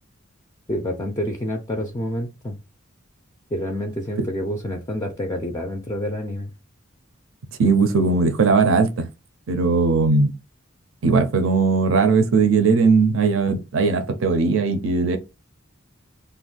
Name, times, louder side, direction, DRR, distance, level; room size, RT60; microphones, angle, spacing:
voice 1, 0.7-2.6 3.5-6.5, equal, 15° left, 0.3 m, -28 dB
voice 2, 7.6-9.1 9.5-10.4 11.0-15.2, right 4 dB, 70° right, 0.5 m, -18 dB
2.5 x 2.2 x 3.8 m
head